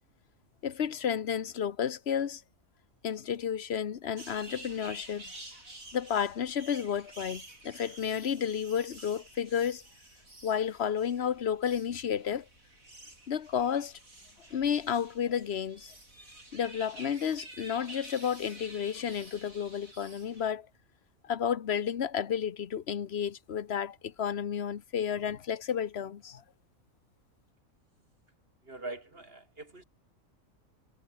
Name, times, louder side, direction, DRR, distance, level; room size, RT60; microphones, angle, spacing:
voice 1, 0.6-2.4 3.0-5.3 5.9-9.8 10.4-12.5 13.3-14.0 14.5-15.9 16.5-20.7 21.2-26.4, left 8 dB, 55° left, 1.2 m, -32 dB
sound 1, 4.2-20.5, right 2 dB, 85° right, 8.3 m, -50 dB
voice 2, 28.6-29.8, right 2 dB, 45° right, 4.5 m, -43 dB
omnidirectional pair, 1.4 m